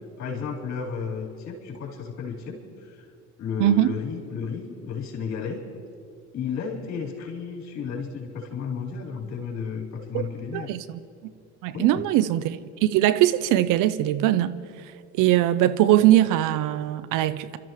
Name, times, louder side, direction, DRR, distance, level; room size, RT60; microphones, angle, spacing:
voice 1, 0.2-3.0 3.4-5.7 6.3-10.7 11.7-12.1, left 6 dB, 50° left, -1 dB, 4.0 m, -33 dB
voice 2, 3.6-4.0 10.1-10.2 10.5-11.0 11.6-14.6 15.1-17.6, right 13 dB, 60° right, 15 dB, 0.7 m, -21 dB
30.0 x 13.0 x 3.1 m, 2.3 s
hypercardioid pair, 70°, 35 cm